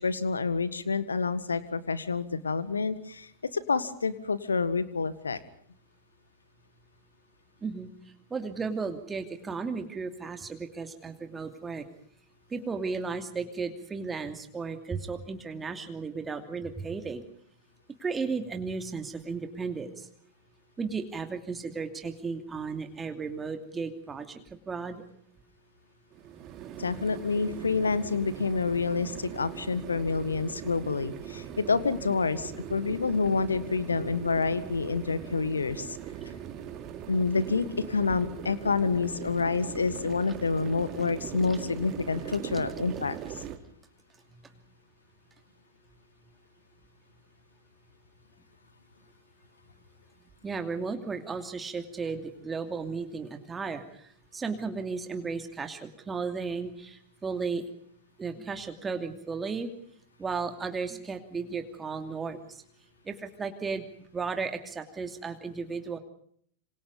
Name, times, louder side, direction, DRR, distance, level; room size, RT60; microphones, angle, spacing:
voice 1, 0.0-5.4 26.8-36.0 37.1-43.2, left 4 dB, 75° left, 16 dB, 1.7 m, -28 dB
voice 2, 8.3-11.8 12.5-17.2 18.0-20.1 20.8-25.0 41.5-41.6 50.4-57.6 58.2-59.7 60.2-62.6 63.1-63.9 64.1-66.0, right 4 dB, 15° right, 6 dB, 2.7 m, -34 dB
sound 1, 26.1-43.6, right 9 dB, 35° right, 2.8 m, -40 dB
27.0 x 27.0 x 5.5 m, 0.64 s
figure-of-eight pair, 90°, 0 cm